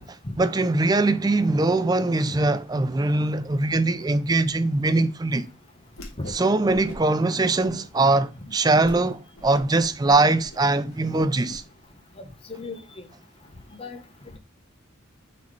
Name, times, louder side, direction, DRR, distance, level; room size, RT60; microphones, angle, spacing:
voice 1, 0.0-5.5 6.3-11.6, right 2 dB, 20° right, 0.4 m, -22 dB
Whoosh swoosh swish, 5.9-6.4 6.7-7.2 7.6-8.1 8.5-8.6 8.8-9.0 9.3-11.6, left 1 dB, 80° left, 1.5 m, -41 dB
voice 2, 12.2-13.1 13.8-14.0, left 2 dB, 25° left, 1.1 m, -36 dB
8.2 x 4.1 x 3.2 m
head